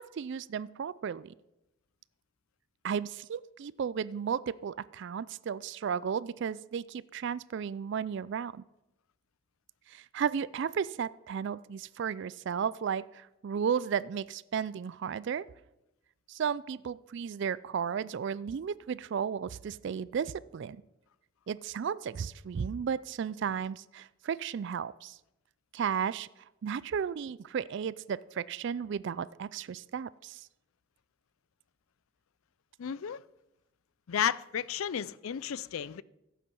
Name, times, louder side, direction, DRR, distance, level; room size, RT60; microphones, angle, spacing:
voice 1, 0.0-1.3 2.8-8.6 9.9-15.5 16.3-20.8 21.5-25.2 25.7-26.3 26.6-30.5, right 7 dB, 55° right, 0.3 m, -34 dB
voice 2, 32.8-33.2 34.1-36.0, left 8 dB, 80° left, 0.4 m, -33 dB
15.5 x 8.4 x 5.4 m
head